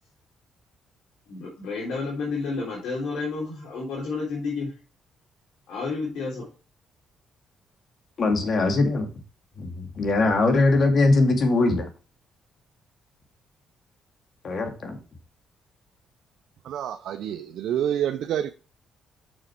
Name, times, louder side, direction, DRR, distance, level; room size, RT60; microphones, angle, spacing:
voice 1, 1.3-4.7 5.7-6.5, left 4 dB, 75° left, 3.3 m, -30 dB
voice 2, 8.2-9.1 9.6-11.9 14.4-15.0, left 3 dB, 50° left, 2.2 m, -21 dB
voice 3, 16.6-18.5, right 10 dB, 75° right, 0.6 m, -28 dB
6.7 x 6.4 x 4.6 m
cardioid pair, 90°, 0 cm